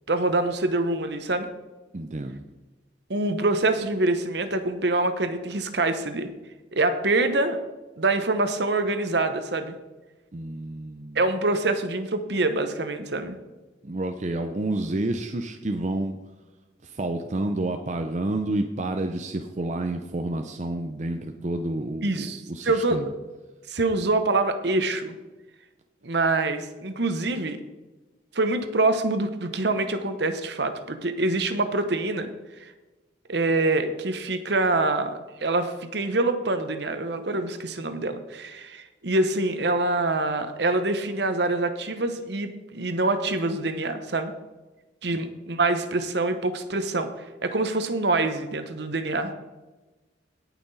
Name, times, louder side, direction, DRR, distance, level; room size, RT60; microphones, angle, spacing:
voice 1, 0.1-1.5 3.1-6.3 6.7-7.6 8.0-9.7 11.1-13.4 22.0-23.0 23.7-25.2 26.0-27.6 28.3-32.3 32.6-32.7 33.3-44.3 45.0-47.1 47.4-49.3, right 2 dB, 60° right, 9 dB, 1.0 m, -25 dB
voice 2, 1.9-2.4 10.3-11.2 13.8-16.2 16.8-23.1 45.1-45.2, right 2 dB, 40° right, 5 dB, 0.6 m, -29 dB
17.5 x 5.9 x 4.1 m, 1.2 s
head